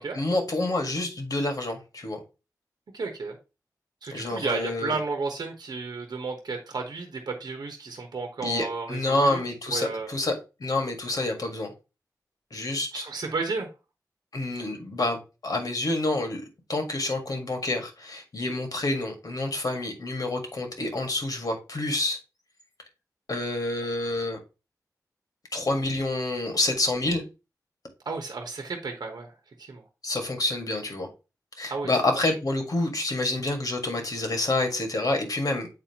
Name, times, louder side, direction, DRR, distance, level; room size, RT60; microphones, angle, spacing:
voice 1, 0.1-2.2 4.1-5.0 8.4-10.3 10.6-11.7 12.5-13.1 14.3-16.4 16.7-22.2 23.3-24.4 25.5-27.2 30.0-31.1 31.6-35.7, left 2 dB, 60° left, 1.7 m, -28 dB
voice 2, 2.9-3.3 4.0-9.4 9.7-10.2 12.9-13.7 28.1-29.3 29.6-29.8 31.7-31.9 32.2-32.3, right 4 dB, 85° right, 1.0 m, -32 dB
7.7 x 4.3 x 2.9 m
wide cardioid pair, 90°, 7 cm